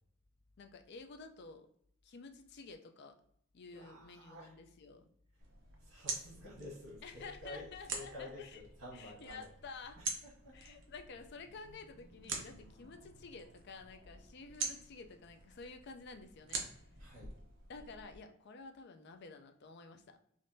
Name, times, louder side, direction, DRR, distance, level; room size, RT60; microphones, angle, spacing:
voice 1, 0.6-1.7 2.0-3.2 3.5-5.1 7.0-8.6 8.9-10.0 10.5-16.7 17.7-20.2, left 4 dB, 55° left, 6 dB, 0.4 m, -51 dB
voice 2, 3.7-4.5 5.8-9.5 10.0-10.8 17.0-17.3, left 1 dB, 85° right, -8 dB, 1.2 m, -50 dB
sound 1, 5.4-18.2, right 4 dB, 60° right, 0.7 m, -46 dB
3.5 x 2.5 x 2.6 m, 0.69 s
head